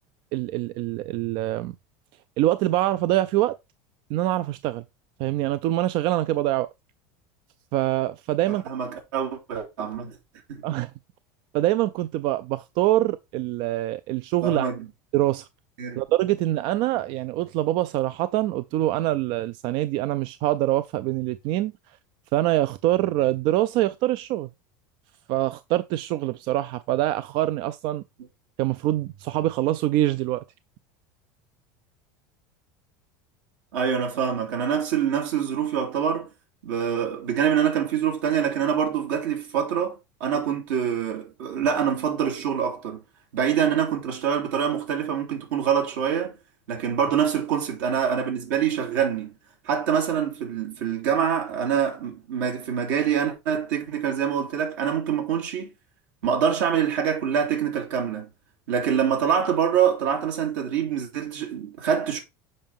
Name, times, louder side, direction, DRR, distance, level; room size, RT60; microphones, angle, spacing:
voice 1, 0.3-1.7 2.4-3.5 4.1-4.8 5.2-6.7 7.7-8.6 10.6-10.9 11.5-14.6 15.1-15.5 16.0-21.7 22.3-24.5 25.3-28.0 28.6-30.4, right 15 dB, 55° right, 0.4 m, -24 dB
voice 2, 8.5-10.2 10.5-10.6 14.4-14.9 15.8-16.0 33.7-36.3 36.6-43.0 43.3-46.4 46.7-49.3 49.6-55.7 56.2-58.3 58.7-62.2, right 8 dB, 85° right, 3.0 m, -25 dB
7.4 x 4.9 x 3.6 m
supercardioid pair, 130°, 10 cm